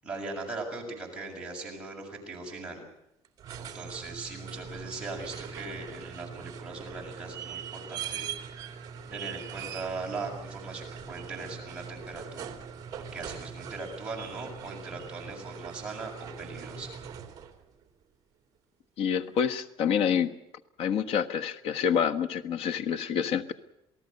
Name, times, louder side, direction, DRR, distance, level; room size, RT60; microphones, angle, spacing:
voice 1, 0.0-2.8 3.6-8.5 9.1-12.5 13.0-17.0, right 3 dB, 10° right, -2 dB, 7.0 m, -39 dB
sound 1, 3.2-17.6 19.4-19.5, right 7 dB, 35° right, 2.8 m, -41 dB
voice 2, 19.0-20.3 20.8-23.5, left 8 dB, 60° left, 8 dB, 1.4 m, -27 dB
28.5 x 18.5 x 6.7 m, 0.85 s
cardioid pair, 170°, 11 cm